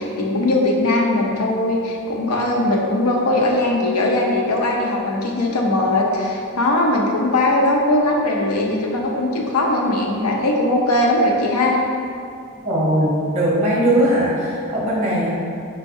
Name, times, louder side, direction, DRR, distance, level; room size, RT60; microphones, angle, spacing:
voice 1, 0.0-11.8, left 1 dB, 85° left, 0 dB, 0.6 m, -19 dB
voice 2, 12.6-15.3, right 1 dB, 30° right, -7 dB, 1.2 m, -19 dB
4.6 x 4.5 x 2.6 m, 2.5 s
head